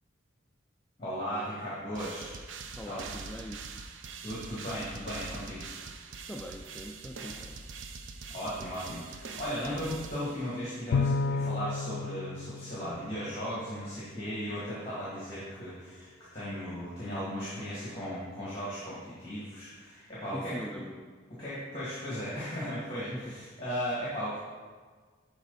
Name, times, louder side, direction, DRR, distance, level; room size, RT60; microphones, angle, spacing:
voice 1, 1.0-2.4 2.9-3.0 4.2-5.7 8.3-20.6 21.4-24.4, equal, 25° left, -9 dB, 2.2 m, -36 dB
sound 1, 2.0-10.8, right 4 dB, 70° right, 0.6 m, -43 dB
voice 2, 2.8-3.7 6.3-7.6 20.3-21.1 23.1-23.4, equal, 5° left, 1 dB, 0.3 m, -41 dB
Bowed string instrument, 10.9-13.5, left 4 dB, 85° left, 0.3 m, -31 dB
11.5 x 4.1 x 4.1 m, 1.5 s
head